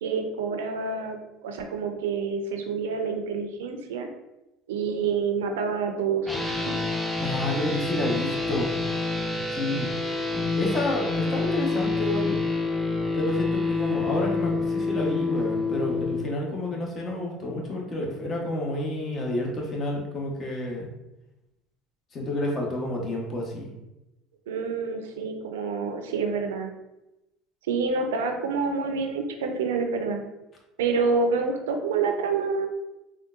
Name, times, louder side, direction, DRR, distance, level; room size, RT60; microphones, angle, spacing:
voice 1, 0.0-4.1 4.7-6.3 6.7-6.9 24.5-26.7 27.7-30.2 30.8-32.7, right 5 dB, 85° right, 5 dB, 0.4 m, -27 dB
sound 1, 6.3-16.2, left 3 dB, 10° left, 0.7 m, -27 dB
voice 2, 7.2-8.7 9.4-10.0 10.3-12.4 13.1-20.9 22.1-23.7, left 1 dB, 40° left, -1 dB, 0.9 m, -30 dB
3.7 x 2.2 x 2.4 m, 0.93 s
hypercardioid pair, 80°, 0 cm